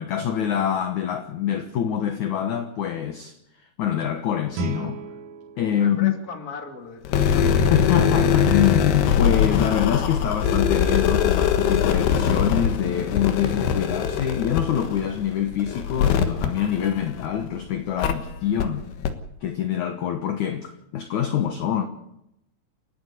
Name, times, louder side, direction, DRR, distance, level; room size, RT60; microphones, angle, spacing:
voice 1, 0.0-5.0 5.6-6.1 7.7-18.9 19.4-21.9, left 9 dB, 65° left, 2.1 m, -25 dB
Guitar, 4.5-7.3, right 8 dB, 65° right, 2.7 m, -37 dB
voice 2, 5.7-7.7, left 5 dB, 30° left, 2.2 m, -38 dB
sound 1, 7.0-17.4 18.0-18.1 18.6-18.7 19.0-19.1, left 7 dB, 80° left, 3.4 m, -22 dB
30.0 x 10.5 x 8.4 m
omnidirectional pair, 4.7 m